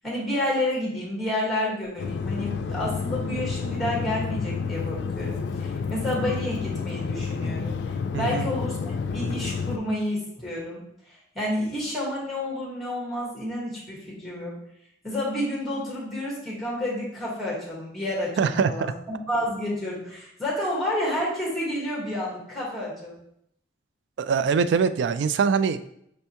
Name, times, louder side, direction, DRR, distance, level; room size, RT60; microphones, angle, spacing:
voice 1, 0.0-10.8 11.3-14.6 15.0-23.1, left 1 dB, ahead, -4 dB, 1.5 m, -30 dB
sound 1, 2.0-9.8, left 5 dB, 80° left, 0.3 m, -30 dB
voice 2, 8.1-8.5 18.4-18.7 24.2-25.9, right 5 dB, 90° right, 12 dB, 0.3 m, -23 dB
5.3 x 3.4 x 2.8 m, 0.72 s
head